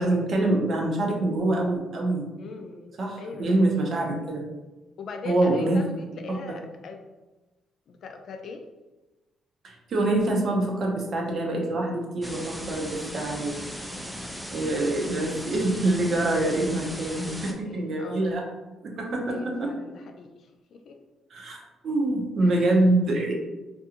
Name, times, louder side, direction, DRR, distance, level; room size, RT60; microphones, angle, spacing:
voice 1, 0.0-2.2 3.0-4.4 5.2-5.8 9.6-13.5 14.5-18.4 19.0-19.7 21.3-23.3, right 2 dB, 55° right, -1 dB, 0.7 m, -25 dB
voice 2, 2.4-3.8 5.0-7.1 7.9-8.6 13.3-15.5 17.2-18.5 19.3-21.0 22.4-22.6, left 4 dB, 65° left, 5 dB, 0.4 m, -41 dB
sound 1, 12.2-17.5, equal, 5° right, 0.4 m, -37 dB
2.5 x 2.3 x 2.8 m, 1.1 s
cardioid pair, 90°, 0 cm